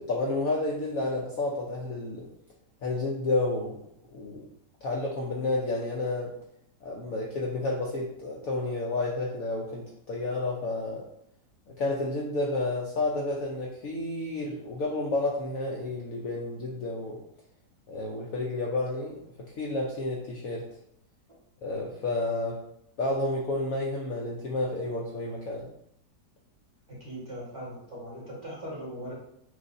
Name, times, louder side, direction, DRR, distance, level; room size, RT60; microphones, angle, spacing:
voice 1, 0.0-2.3 2.8-3.8 4.1-4.4 4.8-6.3 6.8-11.0 11.8-17.2 17.9-19.2 19.6-20.7 21.6-22.6 23.0-25.7, left 2 dB, 65° left, -3 dB, 0.9 m, -30 dB
voice 2, 27.0-29.1, equal, 20° right, -8 dB, 1.4 m, -39 dB
6.1 x 2.4 x 2.6 m, 0.73 s
omnidirectional pair, 1.9 m